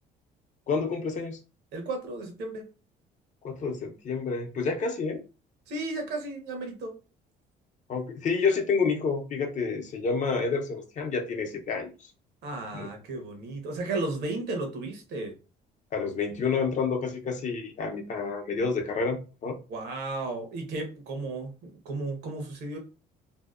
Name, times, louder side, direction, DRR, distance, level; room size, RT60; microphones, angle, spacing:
voice 1, 0.7-1.4 3.4-5.2 7.9-11.9 12.7-12.9 15.9-19.6, left 5 dB, 45° left, 4 dB, 0.6 m, -29 dB
voice 2, 1.7-2.7 5.7-7.0 12.4-15.3 19.7-22.8, right 2 dB, 75° right, 4 dB, 0.8 m, -34 dB
2.7 x 2.1 x 2.4 m, 0.32 s
cardioid pair, 110°, 17 cm